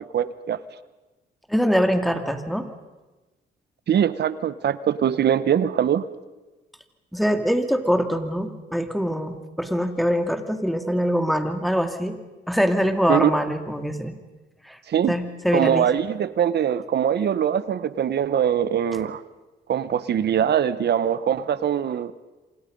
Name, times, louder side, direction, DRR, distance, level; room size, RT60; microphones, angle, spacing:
voice 1, 0.1-0.6 3.9-6.1 13.1-13.3 14.9-15.1 15.5-19.2 19.7-22.1, right 9 dB, 60° right, 15 dB, 1.1 m, -22 dB
voice 2, 1.5-2.7 7.1-12.2 12.5-14.2 14.6-14.8 15.1-15.9, equal, ahead, 7 dB, 2.6 m, -23 dB
28.0 x 26.5 x 5.4 m, 1.2 s
cardioid pair, 90°, 19 cm